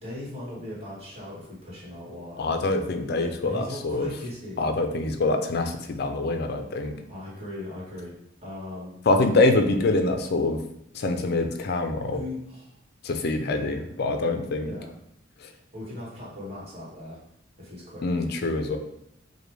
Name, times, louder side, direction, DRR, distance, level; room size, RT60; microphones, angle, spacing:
voice 1, 0.0-2.5 3.4-4.6 7.1-8.1 8.4-9.0 12.1-12.7 13.5-13.8 14.6-14.9 15.7-17.2 17.6-18.1, left 1 dB, 30° right, -6 dB, 1.4 m, -38 dB
voice 2, 2.4-4.1 4.6-7.0 9.1-10.6 10.9-12.2 13.0-14.7 18.0-18.8, left 2 dB, 50° left, 6 dB, 0.4 m, -25 dB
4.8 x 2.2 x 3.3 m, 0.77 s
head